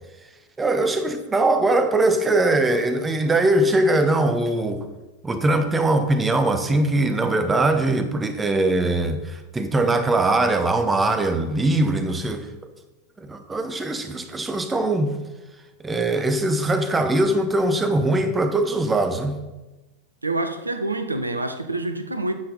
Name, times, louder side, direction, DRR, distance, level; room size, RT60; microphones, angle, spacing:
voice 1, 0.6-4.9 5.2-12.5 13.2-15.2 15.8-19.4, right 2 dB, 15° right, 0.9 m, -21 dB
voice 2, 20.2-22.3, right 2 dB, 80° right, 0.8 m, -26 dB
9.6 x 6.9 x 4.1 m
figure-of-eight pair, 90°, 0 cm